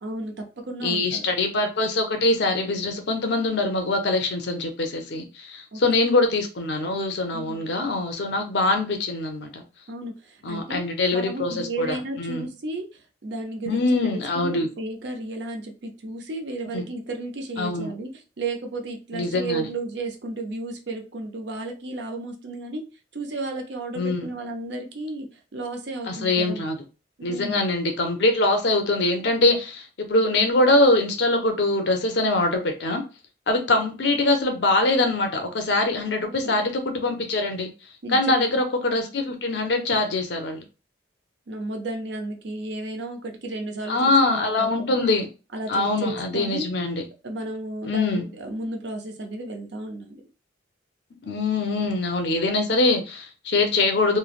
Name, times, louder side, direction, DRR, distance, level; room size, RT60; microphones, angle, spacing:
voice 1, 0.0-1.2 5.7-6.0 7.3-7.7 9.9-10.9 11.1-12.9 13.2-18.1 18.4-22.8 23.1-25.3 25.5-26.6 27.2-27.6 36.2-36.5 38.0-38.5 41.5-45.1 45.5-46.7 47.2-50.2, right 2 dB, 65° right, 0.6 m, -33 dB
voice 2, 0.8-9.6 10.4-12.5 13.7-14.7 16.7-16.8 17.6-17.9 19.1-19.7 23.9-24.3 26.0-26.8 27.2-33.0 33.5-37.7 38.1-40.6 43.9-45.3 45.7-47.0 47.8-48.3 51.2-54.2, left 2 dB, 60° left, 0.6 m, -23 dB
3.1 x 2.1 x 2.4 m
head